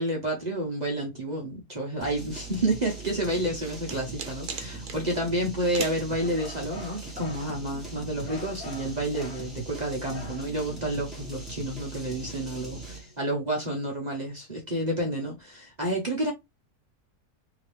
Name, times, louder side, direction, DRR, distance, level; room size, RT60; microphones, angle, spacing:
voice 1, 0.0-16.3, right 1 dB, 30° right, 1.0 m, -30 dB
sound 1, 2.0-13.2, right 3 dB, ahead, 1.4 m, -40 dB
sound 2, 3.0-5.0 5.7-6.1, right 6 dB, 70° right, 1.3 m, -37 dB
sound 3, 6.2-7.5 8.3-9.5 10.1-10.5, left 2 dB, 45° left, 1.0 m, -44 dB
3.7 x 2.9 x 3.3 m
omnidirectional pair, 1.7 m